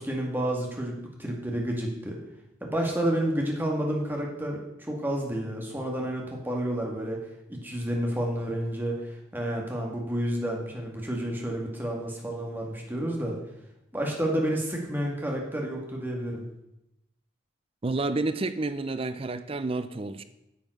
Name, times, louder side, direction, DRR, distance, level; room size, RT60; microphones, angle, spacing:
voice 1, 0.0-2.2 2.6-7.2 7.5-13.4 13.9-16.4, right 1 dB, 10° right, 0 dB, 2.0 m, -30 dB
voice 2, 17.8-20.2, right 3 dB, 30° right, 12 dB, 0.5 m, -30 dB
9.1 x 7.6 x 6.5 m, 0.87 s
head